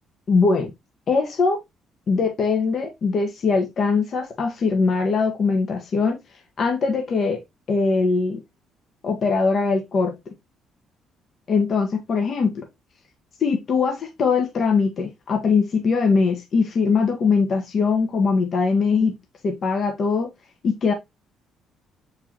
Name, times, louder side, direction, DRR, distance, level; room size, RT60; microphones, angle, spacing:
voice 1, 0.3-0.7 1.1-1.6 2.1-6.2 6.6-7.4 7.7-8.4 9.0-10.3 11.5-12.6 13.4-19.1 19.4-20.3 20.6-20.9, left 4 dB, 45° left, 1.3 m, -21 dB
7.3 x 4.6 x 2.9 m
cardioid pair, 140°, 0 cm